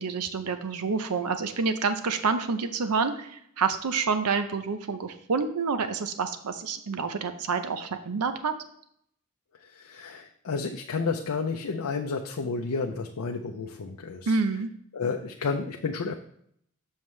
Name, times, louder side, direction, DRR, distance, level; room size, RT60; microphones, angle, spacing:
voice 1, 0.0-8.5 14.3-14.7, right 5 dB, 90° right, 9 dB, 0.6 m, -28 dB
voice 2, 9.7-14.4 14.9-16.2, left 4 dB, 85° left, 2 dB, 0.6 m, -31 dB
7.2 x 6.4 x 3.2 m, 0.68 s
head